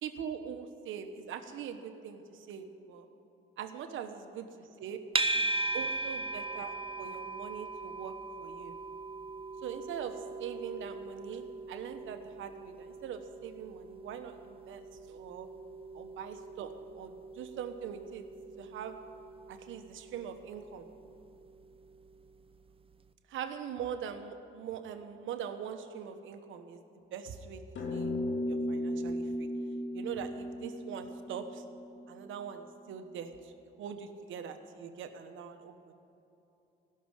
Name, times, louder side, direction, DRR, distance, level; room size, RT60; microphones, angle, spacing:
voice 1, 0.0-3.1 3.6-5.0 5.3-5.4 5.7-8.7 9.6-14.8 15.1-15.5 15.9-18.3 18.6-19.0 19.5-20.9 23.3-27.6 27.9-28.1 28.5-29.5 29.9-31.6 32.1-33.5 33.8-35.9, right 8 dB, 80° right, 7 dB, 1.2 m, -42 dB
sound 1, 5.1-22.3, right 2 dB, 30° right, 0.7 m, -39 dB
sound 2, 27.8-32.4, left 1 dB, 70° left, 2.2 m, -36 dB
16.0 x 6.7 x 9.9 m, 2.9 s
cardioid pair, 90°, 20 cm